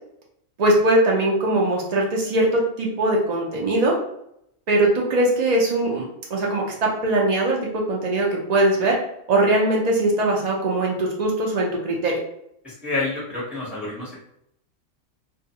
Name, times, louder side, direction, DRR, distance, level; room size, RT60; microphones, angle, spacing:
voice 1, 0.6-3.9 4.7-9.0 9.3-12.2, right 1 dB, 75° right, -2 dB, 0.3 m, -21 dB
voice 2, 12.6-14.2, left 3 dB, ahead, -6 dB, 0.8 m, -28 dB
2.3 x 2.3 x 2.8 m, 0.75 s
omnidirectional pair, 1.4 m